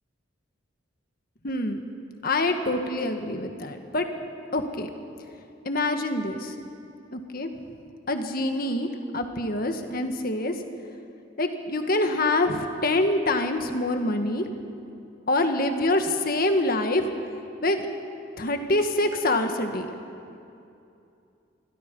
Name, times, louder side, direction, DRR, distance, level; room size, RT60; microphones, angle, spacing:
voice 1, 1.4-1.8 2.2-4.1 4.5-4.9 5.6-6.5 7.1-7.5 8.1-8.9 9.1-10.5 11.4-14.4 15.3-17.0 17.6-17.8 18.4-19.9, left 2 dB, 50° left, 6 dB, 1.7 m, -25 dB
27.0 x 21.5 x 5.5 m, 2.7 s
head